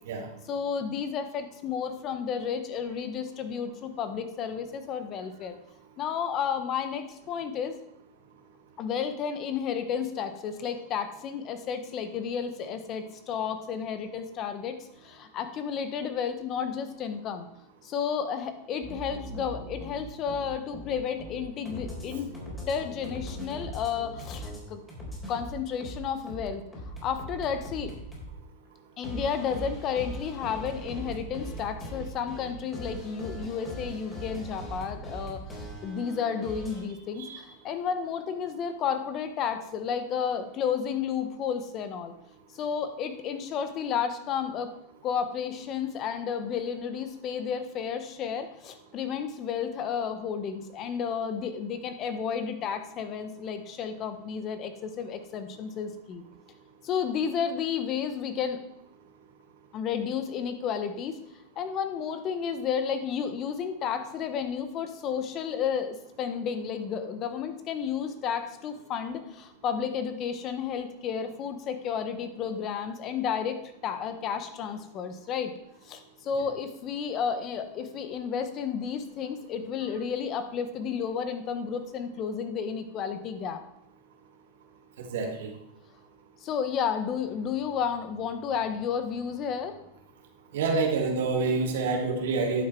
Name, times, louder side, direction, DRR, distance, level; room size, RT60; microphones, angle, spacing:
voice 1, 0.5-5.5 6.0-7.8 8.8-14.8 15.0-17.5 17.8-22.3 22.7-24.8 25.3-26.6 27.0-27.9 29.0-42.1 42.5-44.7 45.0-56.2 56.8-58.6 59.7-61.2 61.6-73.6 73.8-75.5 75.8-83.6 86.4-89.8, left 7 dB, 35° left, 9 dB, 1.2 m, -32 dB
sound 1, 18.8-24.6 24.9-28.3 29.0-36.8, equal, 15° left, 3.9 m, -40 dB
voice 2, 85.0-85.5 90.5-92.6, right 4 dB, 75° right, 4 dB, 2.0 m, -27 dB
11.0 x 6.8 x 4.6 m, 0.81 s
supercardioid pair, 130°, 0 cm